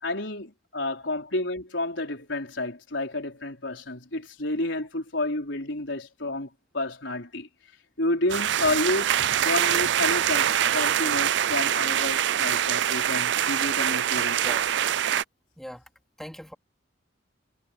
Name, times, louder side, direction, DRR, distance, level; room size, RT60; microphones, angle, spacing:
voice 1, 0.0-6.5 6.7-7.5 8.0-9.1 9.4-14.5, left 2 dB, 75° left, 4.7 m, -30 dB
sound 1, 8.3-15.2, right 10 dB, 65° right, 0.4 m, -24 dB
voice 2, 14.4-14.7 15.6-15.8 16.2-16.5, equal, ahead, 3.3 m, -40 dB
head